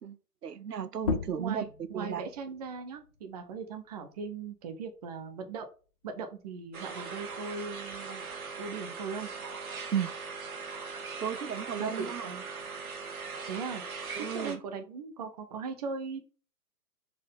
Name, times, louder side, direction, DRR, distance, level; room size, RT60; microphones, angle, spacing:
voice 1, 0.4-1.7 1.9-2.3 9.9-10.1 11.2-12.3 14.2-14.6, right 8 dB, 85° right, 0.8 m, -34 dB
sound 1, 1.0-6.2 6.6-8.4, left 6 dB, 25° left, 0.6 m, -40 dB
voice 2, 1.4-5.7 6.0-8.3 8.6-9.3 11.8-12.4 13.5-13.8 14.3-16.2, right 5 dB, 25° right, 0.9 m, -39 dB
sound 2, 6.7-14.6, right 4 dB, 65° right, 1.9 m, -40 dB
6.0 x 4.6 x 5.2 m
hypercardioid pair, 150°, 47 cm